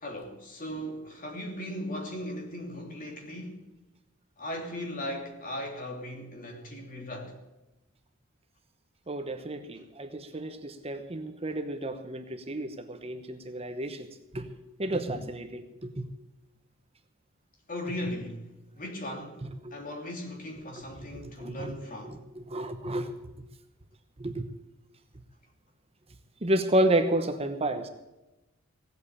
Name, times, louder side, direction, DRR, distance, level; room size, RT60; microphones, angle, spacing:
voice 1, 0.0-3.6 4.4-7.4 17.7-18.5 18.8-22.2, left 1 dB, 40° left, 3.1 m, -38 dB
voice 2, 9.1-14.1 14.3-16.1 19.6-19.8 21.0-21.7 22.0-23.2 24.2-24.4 26.4-27.9, right 1 dB, 30° right, 1.0 m, -31 dB
17.0 x 8.2 x 8.4 m
head